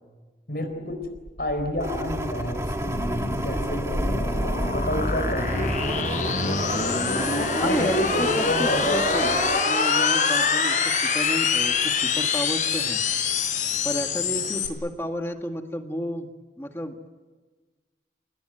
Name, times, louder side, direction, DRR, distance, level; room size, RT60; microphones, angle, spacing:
voice 1, 0.5-1.0 1.4-5.7 7.6-9.3, left 1 dB, 60° left, 5 dB, 4.3 m, -30 dB
sound 1, 0.9-14.7, left 4 dB, 45° left, 5.0 m, -25 dB
sound 2, 1.8-9.6, right 1 dB, 15° right, 1.9 m, -32 dB
voice 2, 7.5-9.3 9.7-13.0 13.8-16.3 16.6-17.1, equal, 15° left, 4 dB, 1.8 m, -31 dB
29.0 x 19.0 x 9.3 m, 1.3 s
head